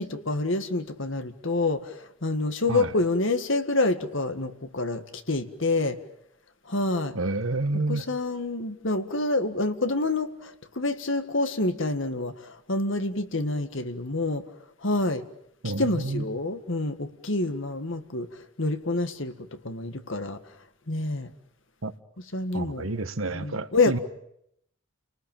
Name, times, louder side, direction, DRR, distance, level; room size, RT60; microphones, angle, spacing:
voice 1, 0.0-6.0 6.7-7.2 7.9-14.4 14.8-15.2 15.8-19.3 19.6-20.4 20.9-21.3 22.3-22.9 23.3-24.0, left 2 dB, 65° left, 8 dB, 1.8 m, -27 dB
voice 2, 7.1-8.0 15.6-16.2 21.8-21.9 22.5-24.0, right 2 dB, 80° right, 11 dB, 1.4 m, -29 dB
29.5 x 19.5 x 9.1 m, 0.76 s
head